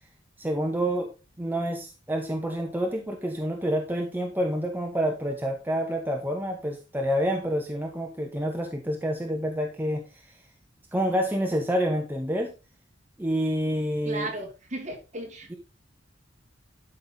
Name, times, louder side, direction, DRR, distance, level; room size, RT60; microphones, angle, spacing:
voice 1, 0.4-1.1 1.4-10.3 10.9-12.5 13.2-14.3 15.5-15.6, equal, 10° right, 1.0 m, -28 dB
voice 2, 14.0-15.6, right 1 dB, 40° right, 3.0 m, -35 dB
12.0 x 5.8 x 4.0 m
head